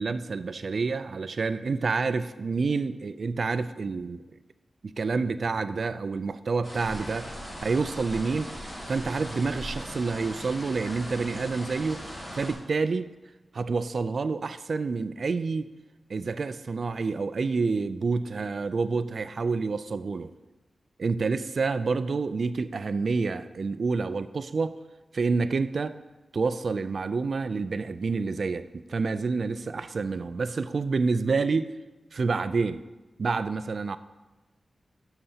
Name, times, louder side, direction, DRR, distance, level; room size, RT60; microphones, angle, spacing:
voice 1, 0.0-4.2 4.8-7.3 7.6-8.5 8.9-12.0 12.3-13.1 13.5-15.7 16.1-20.3 21.0-24.8 25.1-26.0 26.3-31.7 32.1-32.8 33.2-34.0, right 4 dB, 55° right, 13 dB, 0.3 m, -28 dB
sound 1, 6.6-12.5, equal, 25° left, 2.0 m, -39 dB
12.5 x 6.6 x 2.8 m, 1.2 s
wide cardioid pair, 150°, 0 cm